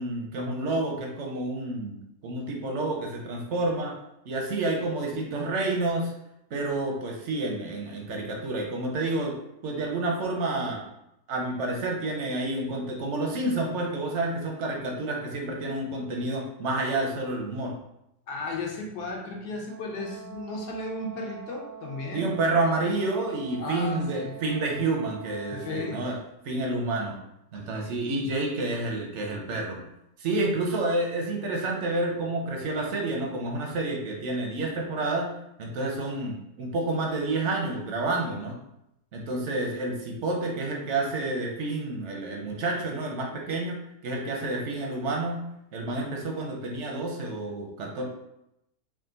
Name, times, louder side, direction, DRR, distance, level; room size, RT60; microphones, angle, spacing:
voice 1, 0.0-2.0 2.2-3.9 4.3-6.1 6.5-9.3 9.6-10.8 11.3-17.7 22.1-26.2 26.4-27.2 27.5-29.8 30.2-35.3 35.6-38.6 39.1-45.4 45.7-48.0, right 2 dB, 65° right, 0 dB, 0.7 m, -29 dB
voice 2, 18.3-22.3 23.6-24.3 25.5-26.0 27.5-27.6, left 2 dB, 75° left, 0 dB, 1.3 m, -35 dB
Brass instrument, 19.7-26.1, right 8 dB, 85° right, 1.2 m, -44 dB
3.7 x 2.3 x 3.8 m, 0.82 s
omnidirectional pair, 1.8 m